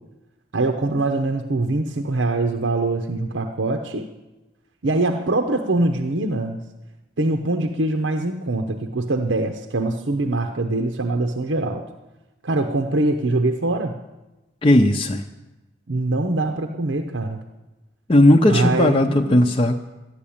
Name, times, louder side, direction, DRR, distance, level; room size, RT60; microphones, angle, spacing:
voice 1, 0.5-4.1 4.8-6.6 7.2-11.8 12.4-13.9 15.9-17.4 18.5-19.5, right 2 dB, 90° right, 4 dB, 0.9 m, -23 dB
voice 2, 14.6-15.2 18.1-19.8, left 1 dB, 30° left, 3 dB, 0.6 m, -16 dB
13.0 x 9.7 x 8.6 m, 1.1 s
head